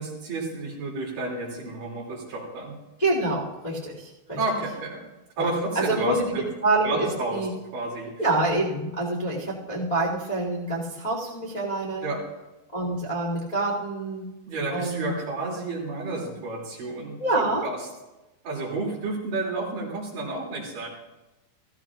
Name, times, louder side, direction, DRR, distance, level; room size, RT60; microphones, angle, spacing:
voice 1, 0.0-2.7 4.4-5.0 5.4-6.5 6.8-7.4 7.7-8.1 12.0-12.2 14.5-17.8 18.4-20.9, right 2 dB, 50° right, -4 dB, 4.2 m, -31 dB
voice 2, 3.0-4.4 5.4-5.5 5.7-6.3 6.6-7.5 8.2-12.1 12.7-14.3 14.7-15.1 17.2-17.7, right 2 dB, 20° left, -4 dB, 1.2 m, -26 dB
16.0 x 15.5 x 2.5 m, 1.0 s
omnidirectional pair, 5.3 m